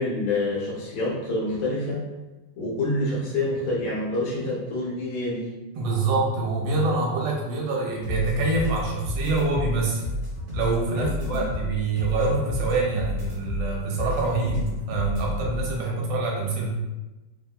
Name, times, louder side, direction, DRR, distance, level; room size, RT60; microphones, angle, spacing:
voice 1, 0.0-2.0 2.6-5.5 10.9-11.4, left 2 dB, 70° left, -5 dB, 1.3 m, -27 dB
voice 2, 5.8-10.0 10.5-16.8, right 3 dB, 70° right, -2 dB, 1.3 m, -25 dB
sound 1, 8.0-15.8, left 1 dB, 50° right, 1.0 m, -31 dB
3.4 x 2.5 x 2.3 m, 1.1 s
omnidirectional pair, 2.2 m